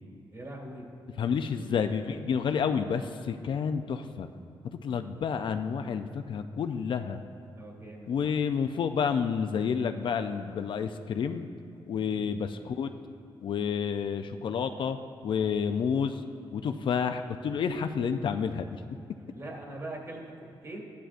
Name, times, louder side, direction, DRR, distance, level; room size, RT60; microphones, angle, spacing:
voice 1, 0.3-0.9 1.6-1.7 7.6-8.1 12.1-12.3 19.3-20.8, right 1 dB, 35° right, -1 dB, 2.0 m, -42 dB
voice 2, 1.2-4.3 4.8-7.2 8.1-11.5 11.9-12.9 13.4-15.0 15.2-16.2 16.5-18.8, left 6 dB, 60° left, 8 dB, 0.4 m, -29 dB
13.5 x 10.5 x 2.5 m, 2.5 s
cardioid pair, 110°, 9 cm